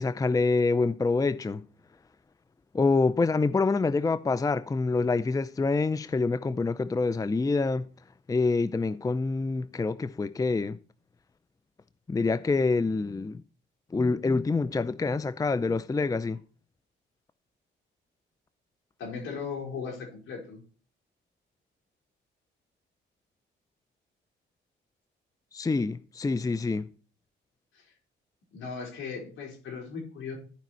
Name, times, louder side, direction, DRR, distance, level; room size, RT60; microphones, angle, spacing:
voice 1, 0.0-1.6 2.7-7.9 8.3-10.8 12.1-13.4 13.9-16.4 25.5-26.9, left 3 dB, 15° left, 0.5 m, -26 dB
voice 2, 19.0-20.6 27.7-27.9 28.5-30.4, left 5 dB, 75° left, 4.5 m, -37 dB
13.5 x 5.2 x 4.5 m
cardioid pair, 90°, 20 cm